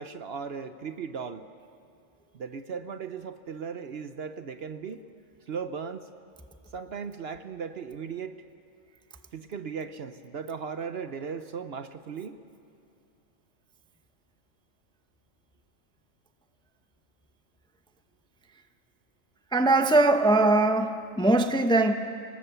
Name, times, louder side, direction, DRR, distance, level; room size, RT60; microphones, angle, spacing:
voice 1, 0.0-1.5 2.3-5.0 5.5-6.1 6.7-8.4 9.3-12.4, right 6 dB, 55° right, 10 dB, 0.9 m, -37 dB
voice 2, 19.5-21.9, right 2 dB, 5° left, 7 dB, 0.6 m, -21 dB
28.5 x 19.5 x 6.9 m, 2.6 s
omnidirectional pair, 1.4 m